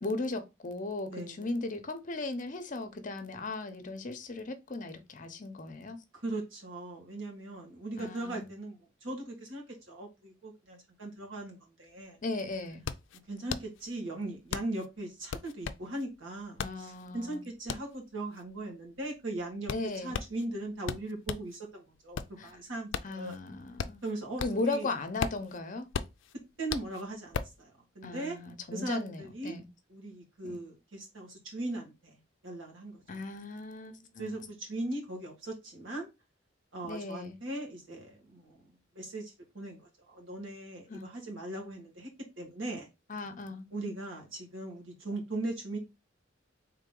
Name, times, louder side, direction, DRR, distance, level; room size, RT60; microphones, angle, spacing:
voice 1, 0.0-6.0 8.0-8.5 12.2-12.9 16.6-17.4 19.7-20.1 22.4-22.6 23.0-24.0 24.4-25.9 28.0-29.6 30.4-30.6 33.1-34.5 36.9-37.4 40.9-41.1 43.1-43.7, left 3 dB, 40° left, 0.7 m, -37 dB
voice 2, 1.1-1.5 6.1-12.2 13.3-19.7 20.0-23.3 24.0-24.9 26.6-28.4 28.7-29.5 29.9-33.0 34.2-36.1 36.7-42.1 42.4-42.9 43.7-45.8, right 2 dB, 85° right, 1.8 m, -39 dB
sound 1, 11.9-12.0 12.3-21.6 21.9-24.8 25.0-27.6, left 6 dB, 70° left, 0.4 m, -38 dB
3.9 x 3.2 x 3.8 m
head